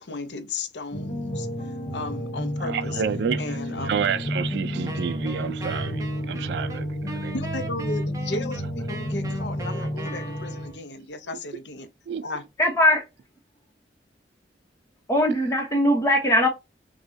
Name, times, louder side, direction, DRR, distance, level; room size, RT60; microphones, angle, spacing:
voice 1, 0.0-3.0 3.4-3.9 7.3-11.9 12.2-12.5, left 3 dB, 80° left, 0.6 m, -35 dB
sound 1, 0.9-10.7, equal, 40° left, 1.1 m, -31 dB
voice 2, 2.6-7.3 12.1-12.3, right 7 dB, 70° right, 0.3 m, -30 dB
Wind instrument woodwind instrument, 4.9-10.9, right 2 dB, 20° right, 0.7 m, -39 dB
voice 3, 12.6-13.0 15.1-16.5, left 1 dB, 15° left, 0.9 m, -20 dB
6.0 x 2.3 x 2.6 m
head